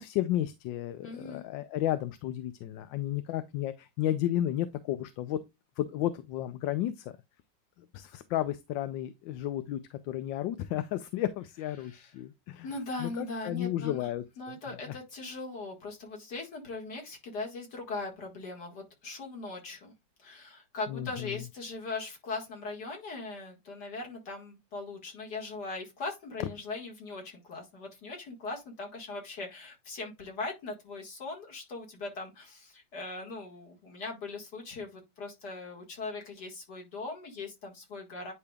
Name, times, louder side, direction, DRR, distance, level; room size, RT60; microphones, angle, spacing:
voice 1, 0.0-5.4 5.8-7.1 7.9-12.7 13.0-14.2 14.9-15.0 20.9-21.4, left 12 dB, 80° left, 1.3 m, -33 dB
voice 2, 1.0-1.5 11.8-12.0 12.6-14.1 14.4-19.9 20.2-38.3, left 3 dB, 60° left, 2.3 m, -40 dB
9.6 x 5.1 x 2.3 m
omnidirectional pair, 2.0 m